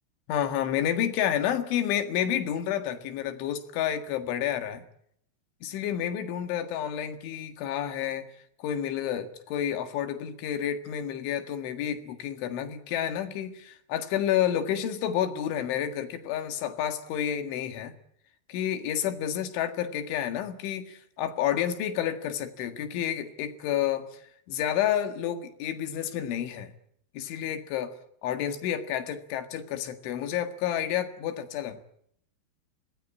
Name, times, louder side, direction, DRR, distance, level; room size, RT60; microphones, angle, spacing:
voice 1, 0.3-4.9 5.6-8.3 8.6-17.9 18.5-24.2 24.5-26.7 27.1-27.9 28.2-31.8, left 10 dB, 75° left, 8 dB, 4.1 m, -30 dB
25.0 x 19.0 x 8.8 m, 0.70 s
omnidirectional pair, 5.7 m